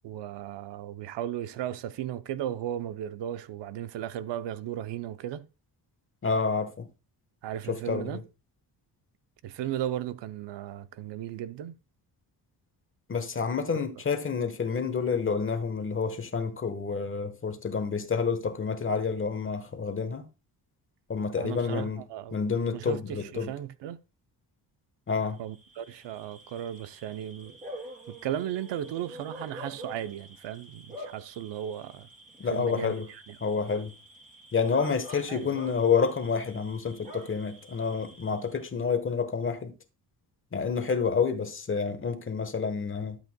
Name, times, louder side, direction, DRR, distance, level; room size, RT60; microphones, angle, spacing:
voice 1, 0.0-5.4 7.4-8.2 9.4-11.7 13.7-13.9 21.4-22.4 22.7-24.0 25.4-27.6 28.1-32.1 32.5-33.4 35.3-35.5, right 11 dB, 85° right, 0.7 m, -36 dB
voice 2, 6.2-6.9 7.7-8.2 13.1-20.3 21.1-22.0 22.3-23.5 25.1-25.4 32.4-33.1 33.4-33.9 34.5-39.7 40.5-43.2, left 5 dB, 30° left, 1.2 m, -29 dB
Bark / Cricket, 25.4-38.7, equal, 20° right, 2.7 m, -47 dB
12.0 x 8.1 x 2.2 m
cardioid pair, 130°, 41 cm